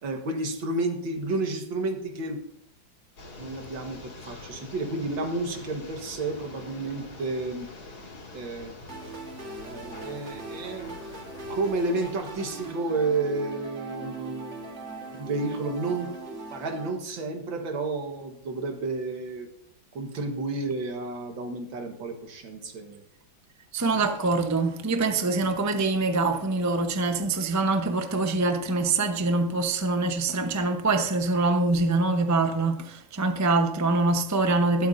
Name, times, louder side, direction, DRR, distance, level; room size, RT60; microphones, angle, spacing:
voice 1, 0.0-2.4 3.4-7.7 8.3-8.8 9.6-10.9 11.5-19.5 19.9-23.0 23.9-24.1, right 3 dB, 80° right, 2.2 m, -31 dB
sound 1, 3.2-12.7, left 2 dB, 85° left, 3.3 m, -45 dB
sound 2, 8.9-16.9, right 2 dB, 40° right, 1.7 m, -40 dB
voice 2, 23.7-34.9, right 3 dB, 25° right, 0.4 m, -24 dB
21.5 x 8.1 x 2.6 m
omnidirectional pair, 2.1 m